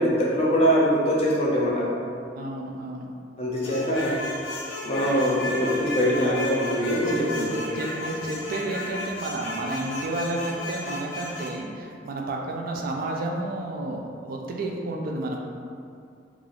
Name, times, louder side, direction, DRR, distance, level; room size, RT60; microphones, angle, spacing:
voice 1, 0.0-1.9 3.4-4.2 4.8-7.5, equal, 35° left, -5 dB, 0.5 m, -23 dB
voice 2, 2.3-3.1 7.1-15.4, right 2 dB, 50° right, 0 dB, 0.3 m, -31 dB
sound 1, 3.6-11.6, left 1 dB, 85° left, 0.5 m, -34 dB
2.5 x 2.3 x 3.2 m, 2.4 s
head